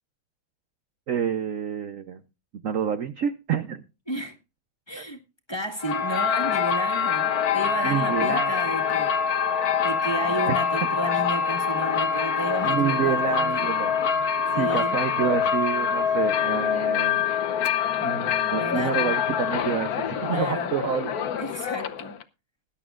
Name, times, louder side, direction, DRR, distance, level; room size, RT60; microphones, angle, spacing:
voice 1, 1.1-2.2 2.6-3.8 5.0-5.1 7.8-8.5 10.5-10.6 12.0-12.1 12.6-14.0 14.5-17.3 18.0-21.1, right 8 dB, 70° right, 0.8 m, -28 dB
voice 2, 4.9-5.2 5.5-9.1 9.8-13.7 14.5-15.0 18.6-19.1 20.2-20.7 21.4-22.2, right 1 dB, 15° left, 1.4 m, -32 dB
sound 1, 5.8-22.2, left 7 dB, 55° left, 1.1 m, -25 dB
20.0 x 11.0 x 2.4 m
omnidirectional pair, 2.3 m